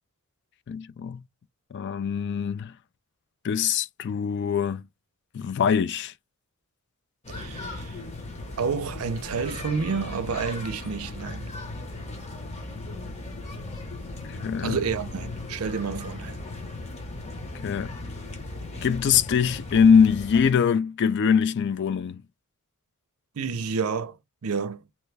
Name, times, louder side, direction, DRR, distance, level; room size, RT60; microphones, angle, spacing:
voice 1, 0.7-1.2 1.7-2.7 3.4-4.8 5.3-6.1 14.3-14.8 17.6-18.0 18.8-22.2, left 6 dB, 50° left, 0.3 m, -23 dB
sound 1, 7.2-20.5, left 2 dB, 30° left, 1.0 m, -37 dB
voice 2, 7.3-8.0 8.6-11.5 14.6-16.4 23.3-24.2 24.4-24.8, right 5 dB, 70° right, 0.5 m, -29 dB
3.0 x 2.2 x 3.2 m
head